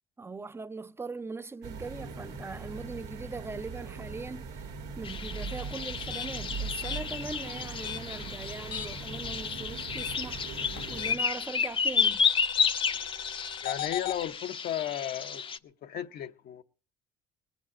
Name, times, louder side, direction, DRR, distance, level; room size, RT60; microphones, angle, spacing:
voice 1, 0.2-4.7 5.0-10.4 10.9-12.3, right 3 dB, 15° right, 0.6 m, -40 dB
sound 1, 1.6-11.1, right 4 dB, 90° right, 2.0 m, -40 dB
sound 2, 5.0-15.6, left 6 dB, 30° left, 0.7 m, -32 dB
sound 3, 6.0-9.1 9.4-11.4 12.0-14.2, left 10 dB, 80° left, 1.7 m, -39 dB
voice 2, 13.6-16.6, left 11 dB, 65° left, 0.9 m, -35 dB
20.0 x 7.2 x 7.2 m
cardioid pair, 110°, 17 cm